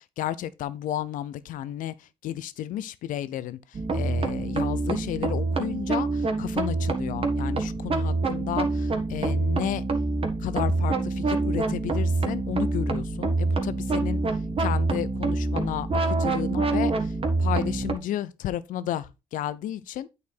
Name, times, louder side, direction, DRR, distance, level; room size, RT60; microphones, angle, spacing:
voice 1, 0.0-3.6 3.9-9.8 10.4-14.2 14.6-17.1 17.4-20.1, left 12 dB, 75° left, 0.7 m, -32 dB
sound 1, 3.7-17.9, right 3 dB, 40° right, 1.7 m, -26 dB
8.6 x 4.4 x 4.2 m
supercardioid pair, 65°, 14 cm